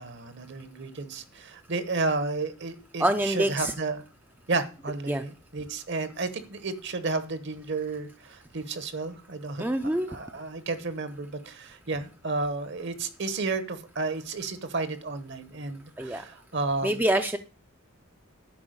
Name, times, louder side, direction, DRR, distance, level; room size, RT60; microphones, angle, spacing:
voice 1, 0.0-4.0 4.5-17.0, right 3 dB, 55° right, 1.1 m, -32 dB
voice 2, 3.0-3.7 5.1-5.2 9.6-10.2 16.0-16.2 16.8-17.4, right 1 dB, 10° right, 0.4 m, -26 dB
10.5 x 4.6 x 7.9 m
head